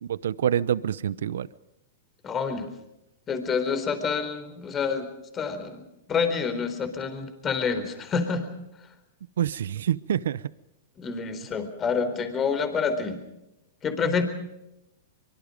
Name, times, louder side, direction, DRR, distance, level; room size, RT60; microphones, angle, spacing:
voice 1, 0.0-1.5 9.4-10.4 14.0-14.2, right 10 dB, 80° right, 19 dB, 0.8 m, -27 dB
voice 2, 2.2-2.7 3.3-5.1 5.3-5.8 6.1-8.5 11.0-13.2 13.8-14.2, left 5 dB, 25° left, 9 dB, 4.2 m, -27 dB
24.0 x 24.0 x 5.2 m, 0.91 s
hypercardioid pair, 130°, 0 cm